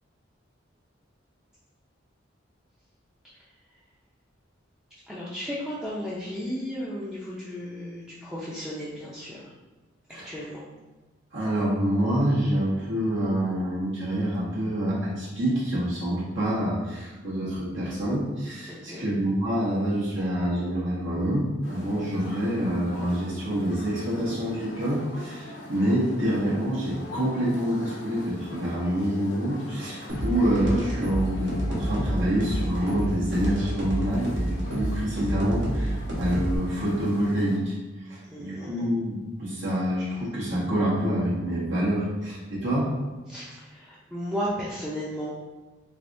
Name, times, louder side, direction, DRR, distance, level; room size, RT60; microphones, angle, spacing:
voice 1, 5.1-9.5 10.1-10.6 18.7-19.1 38.2-38.9 43.3-45.3, equal, 5° right, -8 dB, 0.5 m, -34 dB
voice 2, 11.3-37.7 38.1-42.9, equal, 85° right, -7 dB, 1.5 m, -27 dB
sound 1, 21.6-37.6, left 1 dB, 75° left, 0.9 m, -42 dB
sound 2, 30.1-36.6, equal, 65° right, 0.9 m, -29 dB
3.6 x 3.3 x 2.6 m, 1.2 s
head